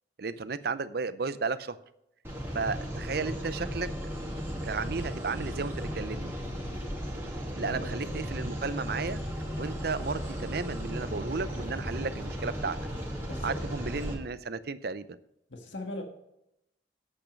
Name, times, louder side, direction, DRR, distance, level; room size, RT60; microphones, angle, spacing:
voice 1, 0.2-1.8 2.5-3.9 4.6-6.3 7.6-9.2 9.6-12.8 13.4-15.2, right 4 dB, 60° right, 14 dB, 0.6 m, -33 dB
sound 1, 2.2-14.1, equal, 15° right, 2.4 m, -35 dB
voice 2, 7.6-7.9 13.2-13.8 15.5-16.0, left 1 dB, 90° left, 3 dB, 1.6 m, -40 dB
8.9 x 8.5 x 5.3 m, 0.82 s
head